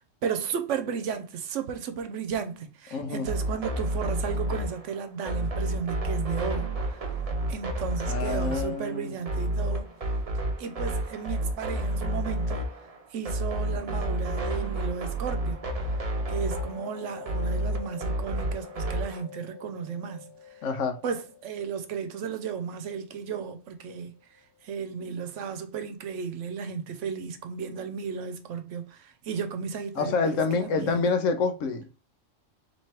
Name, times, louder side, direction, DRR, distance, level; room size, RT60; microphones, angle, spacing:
voice 1, 0.0-7.1 7.5-9.9 10.6-12.7 13.1-15.6 16.3-20.6 21.0-24.1 24.6-31.0, right 6 dB, 75° right, 1.0 m, -34 dB
voice 2, 2.9-3.3 8.1-9.1 20.6-21.0 30.0-31.9, left 4 dB, 90° left, 1.1 m, -27 dB
sound 1, 3.3-19.2, right 1 dB, 40° right, 0.6 m, -30 dB
sound 2, 14.9-24.4, left 7 dB, 15° left, 1.0 m, -47 dB
3.2 x 3.0 x 4.3 m
omnidirectional pair, 1.3 m